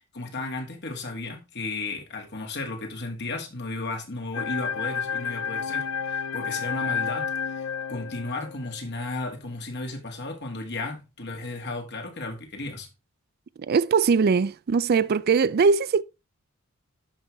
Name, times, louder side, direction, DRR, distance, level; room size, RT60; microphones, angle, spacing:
voice 1, 0.1-12.9, left 2 dB, 55° left, 2.2 m, -34 dB
sound 1, 4.3-8.8, left 6 dB, 85° left, 0.5 m, -30 dB
voice 2, 13.6-16.0, right 5 dB, 50° right, 0.4 m, -21 dB
11.5 x 5.6 x 3.4 m
head